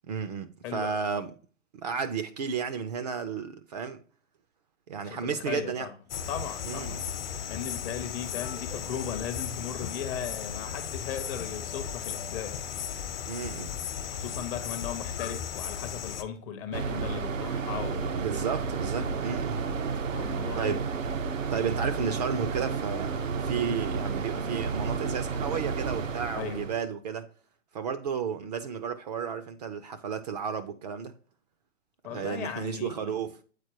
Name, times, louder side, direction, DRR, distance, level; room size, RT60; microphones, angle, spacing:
voice 1, 0.1-1.3 1.7-4.0 4.9-5.9 6.6-7.0 13.3-13.7 18.2-19.6 20.6-20.8 21.5-27.3 27.7-31.1 32.1-33.4, right 6 dB, 35° right, 0.4 m, -33 dB
voice 2, 0.6-1.0 5.0-5.9 6.3-7.0 7.5-12.6 14.1-18.1 19.0-19.2 20.1-20.8 26.3-26.6 32.0-33.2, left 8 dB, 20° left, 0.6 m, -37 dB
sound 1, 6.1-16.2, left 8 dB, 50° left, 0.9 m, -36 dB
sound 2, 16.7-26.8, right 5 dB, 80° right, 0.7 m, -31 dB
8.0 x 4.2 x 2.8 m
figure-of-eight pair, 120°, 38 cm